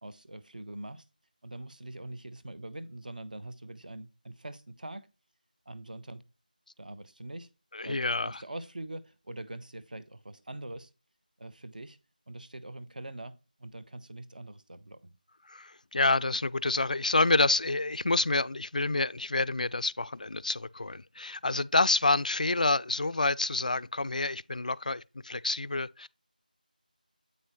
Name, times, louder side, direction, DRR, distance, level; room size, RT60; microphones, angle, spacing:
voice 1, 0.0-1.0 1.4-5.1 5.7-6.2 6.8-7.5 7.8-10.9 11.4-12.0 12.3-15.1, right 1 dB, 60° right, 1.0 m, -43 dB
voice 2, 7.7-8.4 15.5-26.1, left 2 dB, 55° left, 0.4 m, -28 dB
8.4 x 5.4 x 3.1 m
figure-of-eight pair, 175°, 5 cm